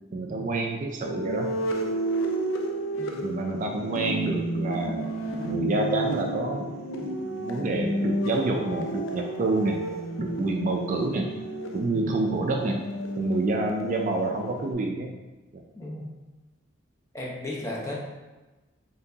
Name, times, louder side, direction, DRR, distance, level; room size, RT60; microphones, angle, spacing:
voice 1, 0.1-1.5 3.2-5.1 5.4-9.8 10.2-11.3 11.7-12.8 13.2-15.1 15.5-15.6, right 2 dB, 40° right, 2 dB, 0.3 m, -28 dB
sound 1, 1.0-14.7, right 1 dB, 90° left, 0.5 m, -31 dB
voice 2, 15.7-16.1 17.1-17.9, left 1 dB, 15° left, -5 dB, 0.8 m, -35 dB
4.4 x 3.8 x 2.7 m, 1.1 s
head